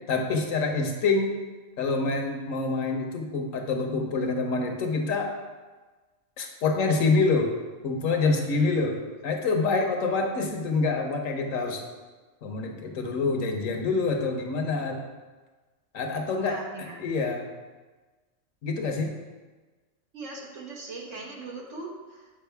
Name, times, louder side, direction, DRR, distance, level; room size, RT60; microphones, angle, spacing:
voice 1, 0.1-1.3 1.8-5.3 6.4-7.5 7.8-9.0 9.2-11.8 12.4-15.0 15.9-16.6 17.0-17.5 18.6-19.1, left 3 dB, 75° left, 3 dB, 1.2 m, -26 dB
voice 2, 16.4-17.0 20.1-22.3, right 3 dB, 65° right, -1 dB, 1.5 m, -40 dB
7.4 x 4.9 x 3.4 m, 1.3 s
omnidirectional pair, 1.4 m